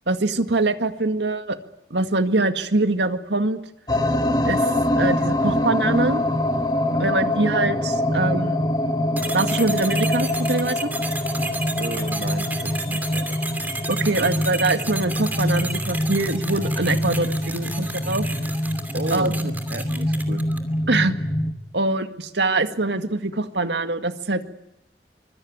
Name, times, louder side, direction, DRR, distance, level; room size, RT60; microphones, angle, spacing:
voice 1, 0.1-1.6 1.9-3.6 4.4-4.7 5.0-6.2 7.0-8.7 9.3-10.9 13.9-18.3 19.1-19.5 20.9-21.1 21.7-24.4, right 2 dB, 85° right, 8 dB, 2.0 m, -23 dB
sound 1, 3.9-21.5, left 1 dB, 20° left, 1.5 m, -24 dB
sound 2, 9.2-20.7, right 2 dB, 10° right, 2.7 m, -33 dB
voice 2, 11.8-13.4 18.9-19.3 19.7-20.4, right 2 dB, 60° right, 7 dB, 2.2 m, -33 dB
25.0 x 23.5 x 9.5 m, 0.84 s
head